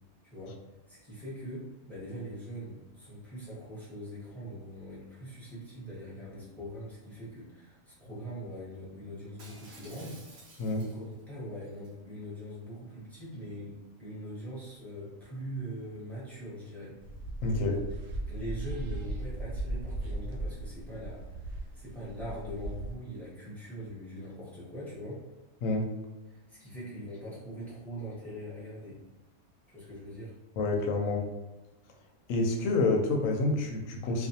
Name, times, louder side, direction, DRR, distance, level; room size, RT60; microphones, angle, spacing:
voice 1, 0.9-10.2 10.8-17.0 17.7-17.8 18.3-25.2 26.3-29.0 29.7-30.3, equal, ahead, -9 dB, 0.7 m, -42 dB
Shatter, 9.4-11.2 11.6-11.9, right 2 dB, 55° right, 0.6 m, -53 dB
sound 1, 17.0-22.9, right 2 dB, 80° right, 1.1 m, -37 dB
voice 2, 17.4-17.8 25.6-25.9 30.6-31.3 32.3-34.3, left 2 dB, 70° left, 1 dB, 0.9 m, -28 dB
2.5 x 2.3 x 2.7 m, 1.1 s
omnidirectional pair, 1.5 m